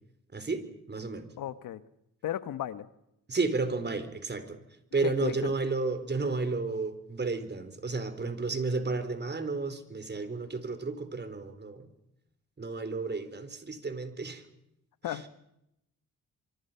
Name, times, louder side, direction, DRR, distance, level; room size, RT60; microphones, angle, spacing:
voice 1, 0.3-1.3 3.3-4.6 4.9-11.9 12.6-14.4, right 3 dB, 30° right, 10 dB, 4.2 m, -32 dB
voice 2, 1.4-1.8 2.2-2.9 5.0-5.5 15.0-15.3, left 11 dB, 80° left, 13 dB, 1.4 m, -34 dB
25.5 x 24.5 x 5.8 m, 0.82 s
cardioid pair, 80°, 32 cm